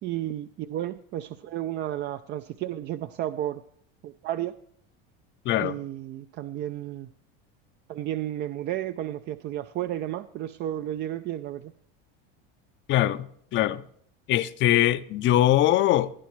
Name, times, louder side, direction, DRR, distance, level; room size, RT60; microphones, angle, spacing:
voice 1, 0.0-3.6 4.0-4.5 5.6-7.1 7.9-11.7, right 12 dB, 35° right, 0.4 m, -32 dB
voice 2, 5.4-5.8 12.9-13.8 14.3-16.1, left 13 dB, 40° left, 0.5 m, -22 dB
18.5 x 10.0 x 3.1 m
supercardioid pair, 125°, 29 cm